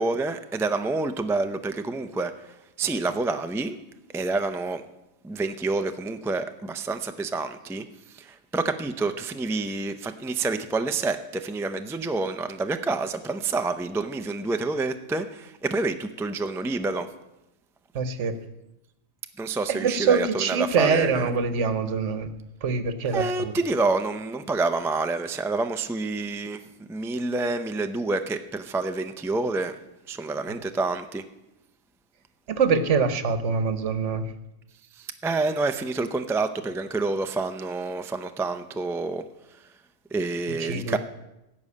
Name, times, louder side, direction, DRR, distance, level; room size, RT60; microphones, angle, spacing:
voice 1, 0.0-3.8 4.1-4.8 5.2-17.1 19.4-21.3 23.1-29.8 30.1-31.2 35.0-39.2 40.1-41.0, right 3 dB, 5° right, 8 dB, 0.3 m, -28 dB
voice 2, 17.9-18.3 19.7-22.3 22.6-23.5 32.5-34.3 40.6-41.0, right 5 dB, 70° right, 11 dB, 1.3 m, -24 dB
16.0 x 5.5 x 8.4 m, 0.94 s
omnidirectional pair, 1.3 m